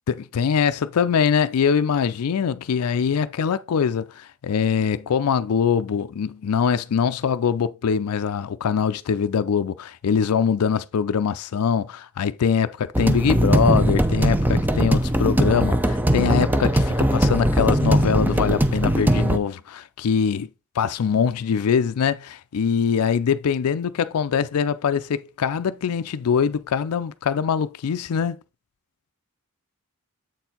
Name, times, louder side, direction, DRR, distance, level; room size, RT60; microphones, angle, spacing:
voice 1, 0.1-20.5 20.8-28.4, left 7 dB, 85° left, 0.4 m, -23 dB
sound 1, 13.0-19.4, right 1 dB, 10° right, 0.5 m, -20 dB
7.8 x 4.4 x 3.9 m
head